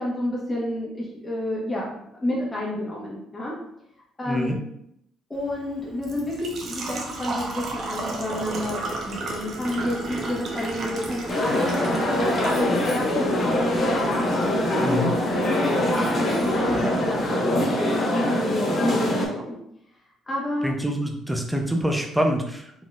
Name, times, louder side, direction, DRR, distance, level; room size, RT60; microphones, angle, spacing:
voice 1, 0.0-3.5 4.2-4.5 5.3-11.7 12.0-15.1 15.5-19.6 20.3-20.7, left 1 dB, 10° left, -5 dB, 1.1 m, -30 dB
voice 2, 4.3-4.6 14.8-15.1 20.6-22.8, equal, 5° right, 2 dB, 0.5 m, -26 dB
Engine / Trickle dribble / Fill (with liquid), 5.3-17.3, right 3 dB, 45° right, 0.7 m, -35 dB
sound 1, 11.3-19.2, left 1 dB, 35° left, 1.0 m, -23 dB
4.1 x 3.9 x 2.4 m, 0.75 s
cardioid pair, 145°, 0 cm